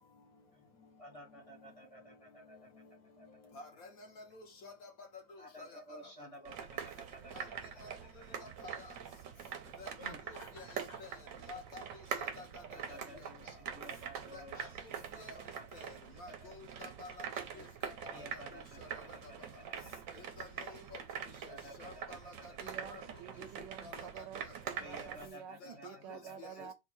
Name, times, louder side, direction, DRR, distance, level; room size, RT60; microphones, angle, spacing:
voice 1, 1.0-3.5 5.4-8.0 8.3-8.4 10.0-10.2 12.7-16.5 17.5-17.7 18.1-19.9 21.3-22.9 24.8-26.7, equal, 30° left, 0.6 m, -54 dB
voice 2, 3.5-3.9 4.2-4.9 5.3-5.8 7.3-7.4 7.8-7.9 8.4-8.9 9.8-10.1 10.5-10.7 11.0-11.1 11.5-11.8 12.2-12.5 12.7-12.8 14.3-14.7 15.2-15.3 15.7-17.9 18.8-18.9 19.2-19.3 20.2-21.0 21.8-23.0 23.8-23.9 25.6-26.5, left 3 dB, 60° left, 1.1 m, -51 dB
sound 1, 6.5-25.3, right 7 dB, 65° right, 0.9 m, -44 dB
Laughter, 10.3-11.2, left 3 dB, 85° left, 2.4 m, -55 dB
voice 3, 22.6-26.7, right 9 dB, 80° right, 1.2 m, -49 dB
4.3 x 2.1 x 4.4 m
omnidirectional pair, 1.9 m